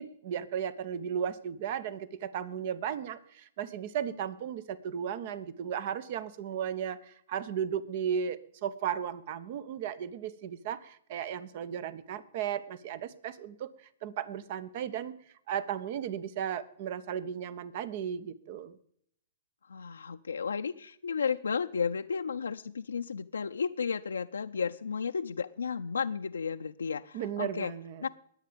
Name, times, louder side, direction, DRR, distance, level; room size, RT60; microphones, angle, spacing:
voice 1, 0.0-13.7 14.0-15.1 15.5-18.8 27.1-28.1, right 8 dB, 55° right, 17 dB, 1.1 m, -35 dB
voice 2, 19.6-27.7 28.0-28.1, left 6 dB, 90° left, 5 dB, 0.5 m, -33 dB
21.0 x 8.1 x 5.2 m, 0.68 s
hypercardioid pair, 120°, 0 cm